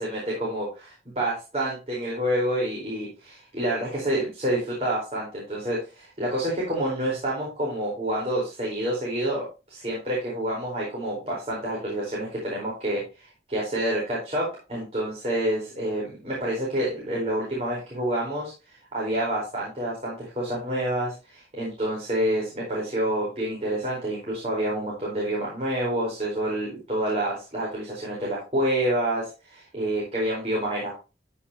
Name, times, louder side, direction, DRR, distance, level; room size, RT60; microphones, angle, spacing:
voice 1, 0.0-18.5 18.9-31.0, right 1 dB, 35° right, -5 dB, 4.5 m, -28 dB
14.0 x 5.8 x 2.9 m, 0.30 s
head